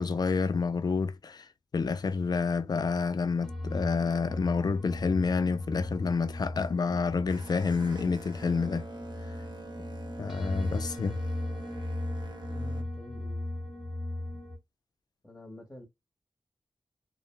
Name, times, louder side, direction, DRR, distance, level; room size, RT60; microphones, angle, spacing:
voice 1, 0.0-1.5 1.7-8.9 10.2-11.2, left 5 dB, 50° left, 0.3 m, -29 dB
sound 1, 3.4-14.6, left 1 dB, 5° right, 1.0 m, -37 dB
Boat Water vehicle, 6.6-12.8, right 2 dB, 55° right, 0.7 m, -45 dB
voice 2, 12.5-13.5 15.2-15.8, left 2 dB, 10° left, 0.8 m, -47 dB
2.3 x 2.1 x 3.1 m
wide cardioid pair, 80°, 9 cm